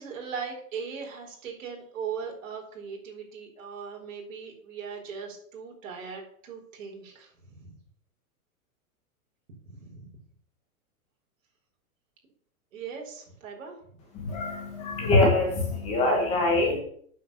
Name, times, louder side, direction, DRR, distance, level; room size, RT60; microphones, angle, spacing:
voice 1, 0.0-7.8 9.6-10.1 12.7-13.8, right 6 dB, 60° right, 0 dB, 4.5 m, -39 dB
voice 2, 14.1-16.8, left 2 dB, 15° left, 1 dB, 1.5 m, -24 dB
9.1 x 6.9 x 6.9 m, 0.62 s
supercardioid pair, 180°, 43 cm